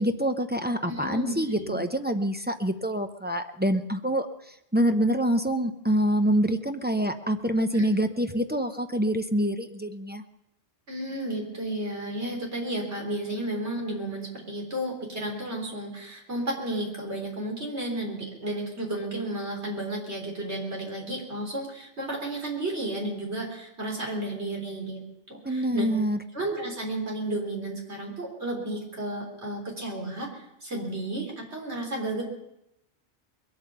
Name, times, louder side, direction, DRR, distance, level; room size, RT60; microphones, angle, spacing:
voice 1, 0.0-4.3 4.7-10.2 25.4-26.2, equal, 10° right, 6 dB, 0.5 m, -26 dB
voice 2, 0.9-1.7 7.7-7.8 10.9-25.0 25.3-25.9 26.3-32.2, right 1 dB, 65° right, -1 dB, 4.0 m, -32 dB
22.0 x 8.5 x 6.8 m, 0.84 s
omnidirectional pair, 1.2 m